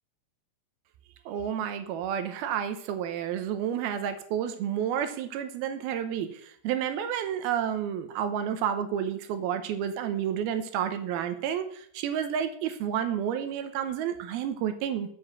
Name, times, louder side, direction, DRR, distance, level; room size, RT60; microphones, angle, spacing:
voice 1, 1.3-15.1, right 9 dB, 75° right, 9 dB, 2.4 m, -30 dB
7.5 x 6.9 x 7.6 m, 0.62 s
omnidirectional pair, 5.0 m